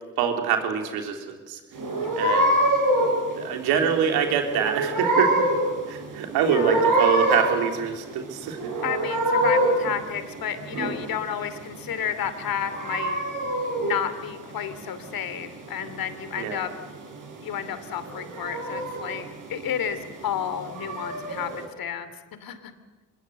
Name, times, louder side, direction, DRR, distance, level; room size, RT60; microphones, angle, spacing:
voice 1, 0.2-1.6 2.2-2.5 3.4-5.5 5.9-8.7 16.4-16.6, right 7 dB, 85° right, 4 dB, 3.5 m, -25 dB
sound 1, 1.7-21.6, right 1 dB, 55° right, 7.0 m, -26 dB
voice 2, 6.4-6.8 8.8-13.2 13.8-16.7 17.4-19.2 19.5-22.1 22.4-22.7, left 8 dB, 65° left, 11 dB, 2.8 m, -31 dB
25.0 x 21.0 x 7.8 m, 1.3 s
supercardioid pair, 65°, 37 cm